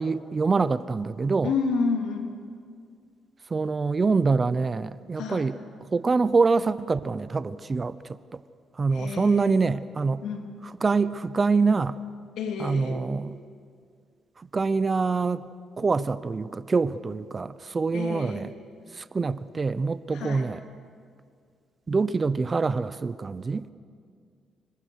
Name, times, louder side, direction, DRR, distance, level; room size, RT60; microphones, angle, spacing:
voice 1, 0.0-1.5 3.5-5.6 5.9-8.0 8.3-8.4 8.8-10.2 10.6-12.0 12.6-13.4 14.5-15.4 15.8-18.5 18.9-20.6 21.9-23.7, right 4 dB, 30° right, 15 dB, 0.7 m, -25 dB
voice 2, 1.4-2.3 5.2-5.5 8.9-9.5 10.2-10.5 12.4-13.0 17.9-18.5 20.1-20.5, left 4 dB, 80° left, 3 dB, 3.3 m, -30 dB
28.0 x 21.5 x 6.5 m, 2.2 s
cardioid pair, 90°, 0 cm